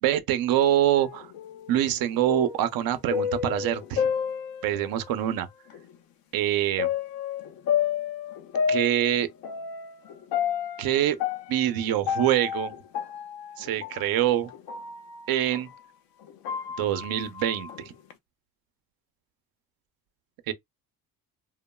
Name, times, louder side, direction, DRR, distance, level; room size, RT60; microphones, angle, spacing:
voice 1, 0.0-1.3 1.7-4.1 4.6-5.5 6.3-6.9 8.7-9.3 10.8-11.2 11.5-12.7 13.6-14.5 15.3-15.7 16.8-17.9 20.5-20.6, right 12 dB, 80° right, 0.7 m, -25 dB
sound 1, 0.6-5.2 5.7-5.8 6.8-15.8 16.2-18.1, left 8 dB, 80° left, 0.7 m, -31 dB
3.0 x 2.2 x 2.2 m
cardioid pair, 120°, 35 cm